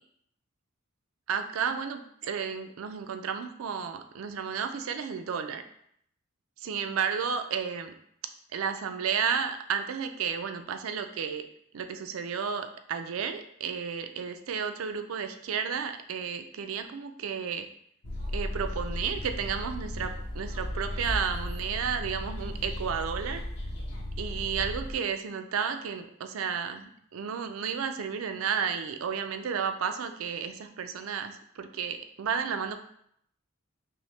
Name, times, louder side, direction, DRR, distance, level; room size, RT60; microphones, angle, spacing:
voice 1, 1.3-5.6 6.6-7.9 8.5-11.4 11.7-17.7 18.3-23.4 24.2-32.8, right 6 dB, 90° right, 8 dB, 0.4 m, -32 dB
sound 1, 18.0-24.9, left 1 dB, 60° left, 0.6 m, -35 dB
5.6 x 2.1 x 3.2 m, 0.69 s
head